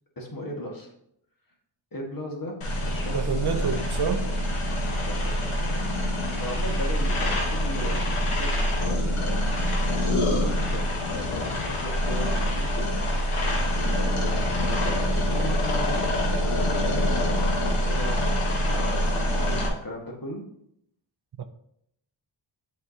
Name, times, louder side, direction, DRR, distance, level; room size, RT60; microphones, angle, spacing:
voice 1, 0.2-0.9 1.9-3.4 4.2-4.3 5.0-5.8 6.4-12.9 14.0-20.5, left 1 dB, 40° left, 1.7 m, -37 dB
sound 1, 2.6-19.7, equal, 80° left, 1.3 m, -25 dB
voice 2, 3.1-4.3 21.4-21.5, right 6 dB, 50° right, 0.6 m, -28 dB
7.5 x 4.7 x 2.8 m
cardioid pair, 45°, 49 cm